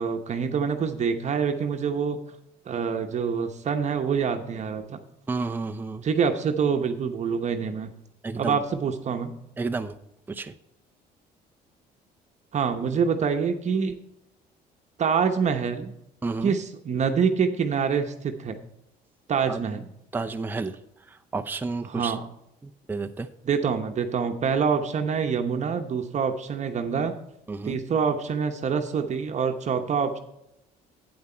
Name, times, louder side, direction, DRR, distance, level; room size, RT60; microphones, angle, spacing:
voice 1, 0.0-2.2 2.7-5.0 6.0-7.9 8.3-9.3 12.5-14.0 15.0-15.9 16.4-18.6 19.3-19.9 21.8-22.3 23.4-27.1 27.6-30.2, right 6 dB, 45° right, 6 dB, 1.0 m, -26 dB
voice 2, 5.3-6.0 8.2-8.6 9.6-9.9 10.3-10.5 16.2-16.5 19.5-19.6 20.1-20.8 21.3-22.2 22.9-23.3 27.5-27.8, right 3 dB, 10° right, 7 dB, 0.5 m, -30 dB
8.8 x 8.1 x 4.4 m, 0.82 s
cardioid pair, 110°, 17 cm